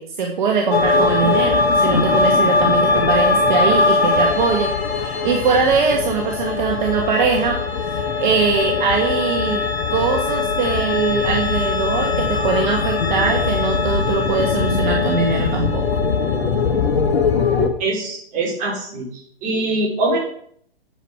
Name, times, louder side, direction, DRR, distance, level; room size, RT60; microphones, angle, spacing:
voice 1, 0.0-7.6 7.9-9.7 9.9-15.8, right 5 dB, 50° right, 2 dB, 1.7 m, -21 dB
sound 1, 0.7-17.7, left 4 dB, 80° left, 2.2 m, -20 dB
voice 2, 17.8-19.1 19.4-20.2, right 2 dB, 25° right, 0 dB, 3.4 m, -22 dB
9.0 x 8.1 x 4.7 m, 0.64 s
hypercardioid pair, 130°, 30 cm